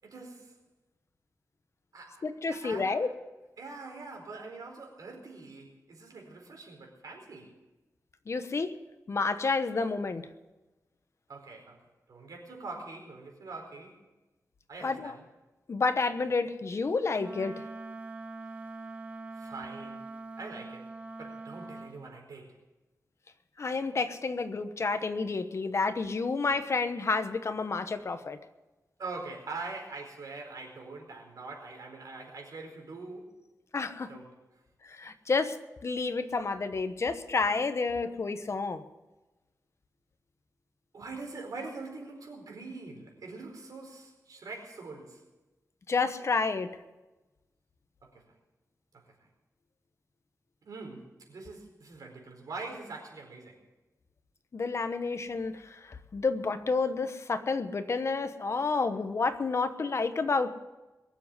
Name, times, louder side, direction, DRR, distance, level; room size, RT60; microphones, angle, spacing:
voice 1, 0.0-0.6 1.9-3.1 3.6-7.6 11.3-11.8 12.1-14.0 14.7-15.2 19.3-20.1 20.4-20.9 21.2-22.6 29.0-33.3 34.1-34.6 40.9-45.2 48.0-48.2 48.9-49.0 50.6-53.6, right 3 dB, 85° right, 1 dB, 4.5 m, -43 dB
voice 2, 2.2-3.1 8.3-8.7 9.1-10.2 14.8-15.1 15.7-17.6 23.6-28.4 33.7-34.1 34.8-35.6 35.8-38.8 45.9-46.7 54.5-60.5, left 4 dB, 50° left, 10 dB, 1.1 m, -30 dB
Wind instrument woodwind instrument, 17.1-22.0, right 3 dB, 20° right, 1.1 m, -43 dB
22.0 x 7.4 x 8.0 m, 1.1 s
wide cardioid pair, 130°, 6 cm